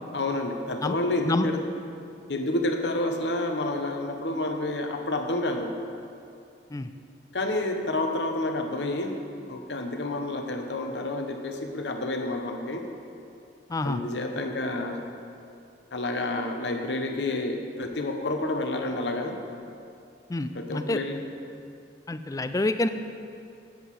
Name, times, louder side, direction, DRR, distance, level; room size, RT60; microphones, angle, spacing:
voice 1, 0.1-1.6 2.3-5.7 7.3-9.1 9.5-12.8 13.8-15.0 15.9-19.4 20.5-21.2, left 2 dB, 80° left, 4 dB, 1.0 m, -29 dB
voice 2, 20.3-21.0 22.1-22.9, left 2 dB, 20° left, 10 dB, 0.4 m, -27 dB
8.2 x 7.9 x 7.4 m, 2.5 s
head